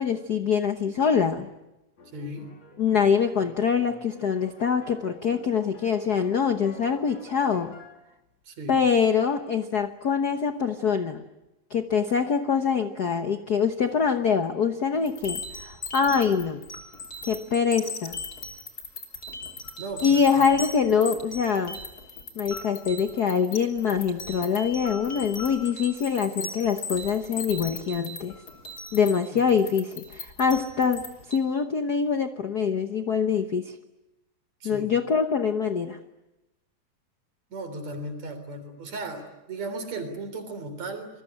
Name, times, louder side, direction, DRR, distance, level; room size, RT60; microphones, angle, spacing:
voice 1, 0.0-1.5 2.8-7.8 8.7-11.2 11.7-16.6 17.3-18.2 20.0-21.8 22.4-28.3 28.9-33.8 34.6-36.0, left 6 dB, 75° left, 8 dB, 0.8 m, -24 dB
sound 1, 2.0-8.0, left 3 dB, 60° left, 4.3 m, -49 dB
voice 2, 2.1-2.5 8.5-8.8 19.8-20.5 29.3-29.5 34.6-35.0 37.5-41.1, right 2 dB, 65° right, 8 dB, 4.9 m, -36 dB
sound 2, 15.0-31.4, left 3 dB, 30° left, 3.6 m, -38 dB
27.5 x 21.5 x 10.0 m, 0.99 s
omnidirectional pair, 3.4 m